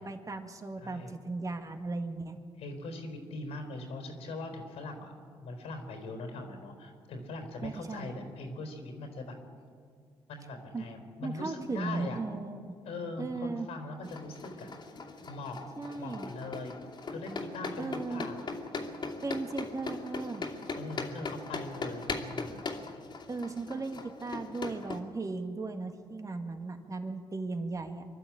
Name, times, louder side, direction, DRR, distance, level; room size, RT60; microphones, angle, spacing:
voice 1, 0.0-2.4 7.6-8.1 10.7-10.8 11.2-12.8 13.2-13.7 15.8-16.3 17.7-18.3 19.2-20.5 23.3-28.1, right 3 dB, 35° right, 6 dB, 2.1 m, -37 dB
voice 2, 0.8-1.1 2.6-5.1 5.4-9.4 10.3-12.2 12.9-14.7 15.3-15.7 16.0-16.7 17.1-18.5 20.7-22.6, left 2 dB, 85° left, 5 dB, 4.1 m, -41 dB
sound 1, 14.0-25.0, left 3 dB, 50° left, 2.7 m, -40 dB
24.5 x 12.0 x 8.8 m, 2.1 s
cardioid pair, 70°, 10 cm